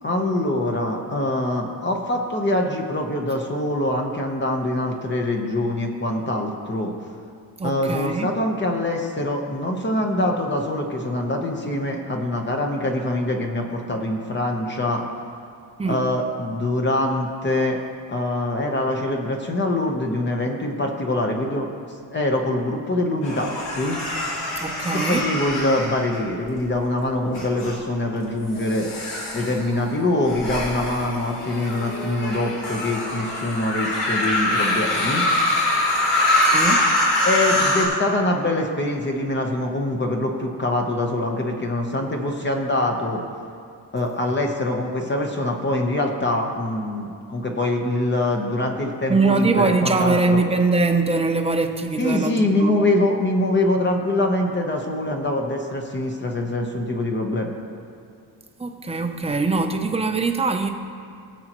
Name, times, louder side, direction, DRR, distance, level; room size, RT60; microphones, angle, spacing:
voice 1, 0.0-6.9 7.6-15.0 15.8-17.8 18.1-21.7 22.1-24.0 24.9-28.9 29.3-35.3 37.2-43.2 43.9-50.4 52.0-57.5, left 1 dB, 25° left, 1 dB, 1.0 m, -24 dB
voice 2, 7.6-8.3 15.8-16.0 24.6-25.3 29.4-29.5 36.4-36.9 49.1-52.8 58.6-60.7, right 3 dB, 15° right, 5 dB, 0.6 m, -22 dB
sound 1, 23.2-26.7 27.3-27.8 28.5-37.8, left 1 dB, 75° left, 3.0 m, -24 dB
20.5 x 7.8 x 3.0 m, 2.4 s
wide cardioid pair, 155°, 42 cm